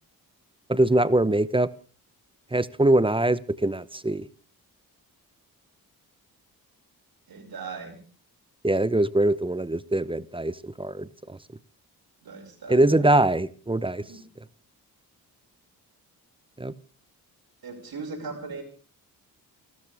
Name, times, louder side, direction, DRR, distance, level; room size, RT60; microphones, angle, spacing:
voice 1, 0.7-1.7 2.5-4.3 8.6-11.4 12.7-14.0 16.6-16.7, right 1 dB, 15° right, 17 dB, 0.9 m, -23 dB
voice 2, 7.3-8.0 12.2-13.1 14.0-14.2 17.6-18.6, right 4 dB, 70° right, 3 dB, 6.0 m, -38 dB
28.0 x 13.0 x 3.5 m, 0.39 s
cardioid pair, 75°, 38 cm